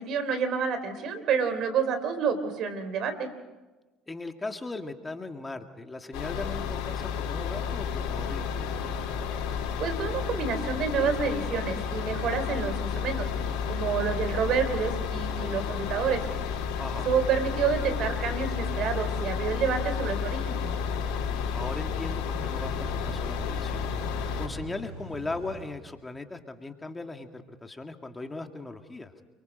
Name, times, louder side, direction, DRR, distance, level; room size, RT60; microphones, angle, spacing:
voice 1, 0.0-3.3 9.8-13.3 13.7-16.2 17.0-20.6, right 6 dB, 60° right, 10 dB, 3.4 m, -28 dB
voice 2, 4.1-9.1 16.8-17.1 21.5-23.9 24.4-29.2, left 3 dB, 20° left, 5 dB, 2.2 m, -38 dB
sound 1, 6.1-24.5, left 7 dB, 70° left, 4.3 m, -31 dB
sound 2, 20.6-25.7, right 2 dB, 90° right, 7.1 m, -43 dB
29.0 x 23.5 x 5.3 m, 1.2 s
hypercardioid pair, 75°, 0 cm